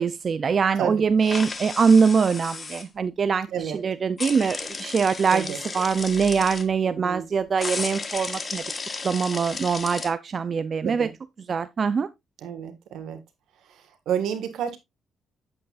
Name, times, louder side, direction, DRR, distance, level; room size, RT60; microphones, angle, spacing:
voice 1, 0.0-8.6 9.0-11.1 11.5-12.1, right 5 dB, 45° right, 0.5 m, -23 dB
sound 1, 1.2-2.8 4.2-6.6 7.6-10.1, left 4 dB, 30° left, 1.3 m, -34 dB
voice 2, 6.8-7.2 10.8-11.1 12.4-13.2 14.0-14.8, right 8 dB, 80° right, 1.7 m, -29 dB
9.0 x 7.7 x 2.5 m
cardioid pair, 90°, 0 cm